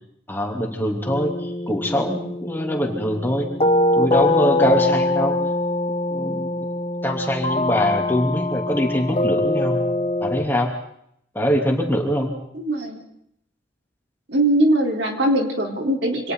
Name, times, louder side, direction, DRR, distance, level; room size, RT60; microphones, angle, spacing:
voice 1, 0.3-3.5 4.0-5.3 6.1-6.5 7.0-9.9 10.2-10.7 11.3-12.3, equal, 10° left, 1 dB, 3.3 m, -23 dB
sound 1, 1.1-10.4, left 2 dB, 30° left, 1.0 m, -23 dB
voice 2, 12.5-13.0 14.3-16.3, right 1 dB, 70° right, 1 dB, 4.2 m, -21 dB
28.5 x 26.0 x 4.1 m, 0.72 s
head